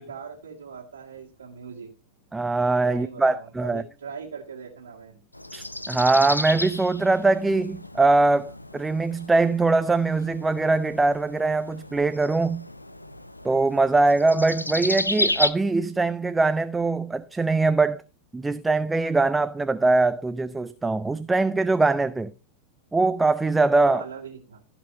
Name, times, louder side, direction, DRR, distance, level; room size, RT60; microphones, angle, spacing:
voice 1, 0.0-1.9 2.9-5.2 23.8-24.6, right 6 dB, 70° right, 1.9 m, -40 dB
voice 2, 2.3-3.8 5.5-12.6 13.4-18.0 18.3-22.3 22.9-24.0, right 3 dB, 10° right, 0.5 m, -22 dB
sound 1, 5.3-15.5, left 1 dB, 85° left, 0.7 m, -32 dB
15.5 x 6.1 x 5.2 m
figure-of-eight pair, 90°, 0 cm